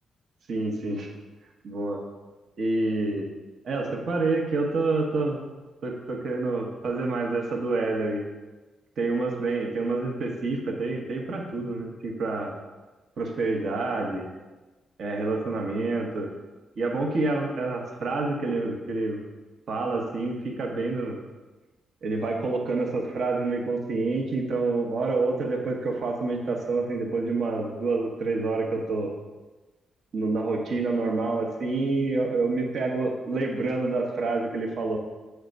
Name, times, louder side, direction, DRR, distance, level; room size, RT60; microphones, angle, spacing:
voice 1, 0.5-1.1 1.6-2.0 2.6-3.3 3.6-5.4 5.8-8.2 9.0-12.5 13.2-14.3 15.0-16.3 16.8-19.2 19.7-21.2 22.0-29.1 30.1-35.0, right 3 dB, 55° right, 1 dB, 1.0 m, -27 dB
7.8 x 3.4 x 5.2 m, 1.2 s
wide cardioid pair, 160°, 0 cm